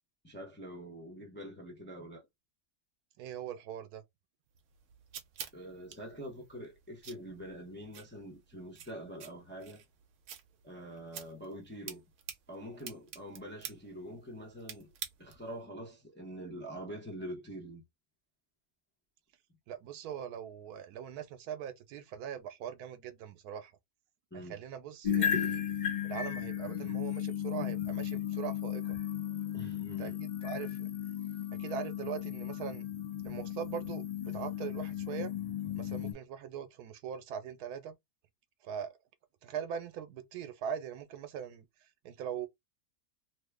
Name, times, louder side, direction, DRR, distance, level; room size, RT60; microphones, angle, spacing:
voice 1, 0.2-2.3 5.5-9.8 10.6-12.0 12.5-14.9 15.2-17.8 24.3-24.6 29.5-30.2, equal, 10° left, 0.6 m, -45 dB
voice 2, 3.2-4.0 19.7-23.7 24.4-25.6 26.0-29.0 30.0-30.9 31.6-32.9 33.2-35.3 35.8-38.0 38.6-39.0 39.4-42.5, right 8 dB, 90° right, 1.1 m, -41 dB
sound 1, 4.5-15.6, right 8 dB, 65° right, 0.9 m, -49 dB
sound 2, 25.0-36.1, left 10 dB, 60° left, 0.4 m, -35 dB
3.0 x 2.1 x 3.3 m
omnidirectional pair, 1.6 m